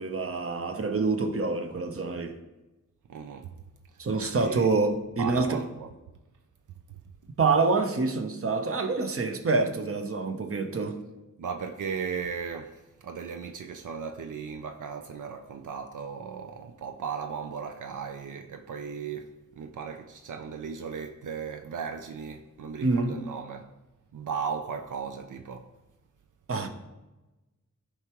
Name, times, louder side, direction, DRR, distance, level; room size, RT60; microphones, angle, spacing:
voice 1, 0.0-2.4 4.0-5.6 7.4-11.0 22.8-23.1 26.5-26.7, right 3 dB, 45° right, 0.9 m, -26 dB
voice 2, 3.1-3.5 3.9-4.0 4.4-4.7 5.2-5.9 6.9-7.0 11.4-23.7 24.1-25.7, right 6 dB, 80° right, 0.5 m, -36 dB
13.5 x 4.8 x 3.0 m
wide cardioid pair, 65°, 30 cm